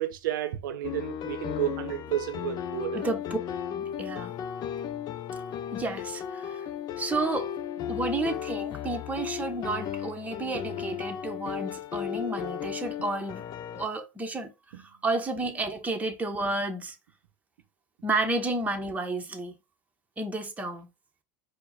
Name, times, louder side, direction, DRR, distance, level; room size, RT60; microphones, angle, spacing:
voice 1, 0.0-3.1 7.9-8.0 14.7-14.8, right 12 dB, 80° right, 0.6 m, -32 dB
sound 1, 0.8-13.9, left 9 dB, 40° left, 0.4 m, -35 dB
voice 2, 3.7-4.3 5.7-6.6 7.0-7.5 7.9-13.4 13.8-17.0 18.0-19.5 20.2-20.9, right 2 dB, 15° right, 0.9 m, -31 dB
4.4 x 2.1 x 4.0 m
hypercardioid pair, 95°, 11 cm